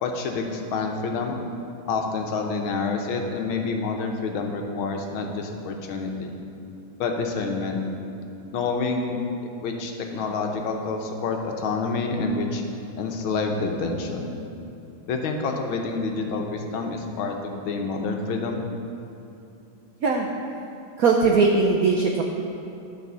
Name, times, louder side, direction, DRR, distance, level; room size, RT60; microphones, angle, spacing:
voice 1, 0.0-1.4 1.9-6.3 7.0-7.8 8.5-9.2 9.6-12.6 13.0-14.3 15.1-18.7, left 4 dB, 75° left, 2 dB, 1.6 m, -28 dB
voice 2, 21.0-22.2, right 4 dB, 80° right, 1 dB, 0.8 m, -19 dB
12.0 x 4.2 x 6.7 m, 2.8 s
omnidirectional pair, 2.3 m